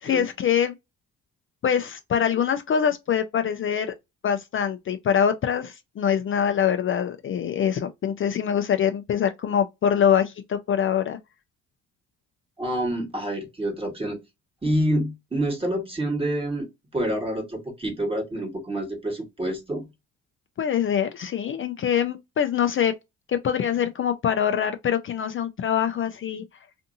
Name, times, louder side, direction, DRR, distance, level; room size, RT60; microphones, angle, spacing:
voice 1, 0.0-0.7 1.6-3.9 4.2-11.2 20.6-22.9 23.3-26.4, left 8 dB, 45° left, 0.5 m, -24 dB
voice 2, 12.6-14.2 14.6-16.7 16.9-19.8, right 1 dB, 20° right, 1.3 m, -27 dB
2.6 x 2.6 x 2.6 m
cardioid pair, 90°, 30 cm